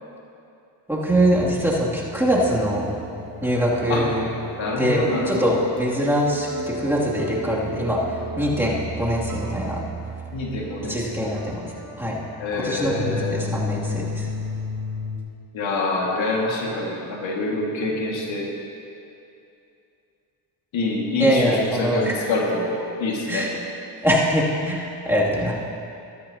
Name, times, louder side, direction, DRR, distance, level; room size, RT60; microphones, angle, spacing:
voice 1, 0.9-2.9 3.4-4.3 4.8-9.8 10.9-11.6 12.0-12.2 12.5-14.3 21.2-22.1 23.3-23.5 24.0-25.5, equal, 5° right, -6 dB, 2.7 m, -23 dB
sound 1, 1.1-15.2, equal, 40° right, 1.7 m, -33 dB
voice 2, 4.5-5.6 10.3-11.2 12.4-13.5 15.5-18.5 20.7-22.7 23.0-23.5, left 2 dB, 70° left, -2 dB, 2.1 m, -26 dB
14.0 x 13.0 x 2.9 m, 2.6 s
supercardioid pair, 70°, 48 cm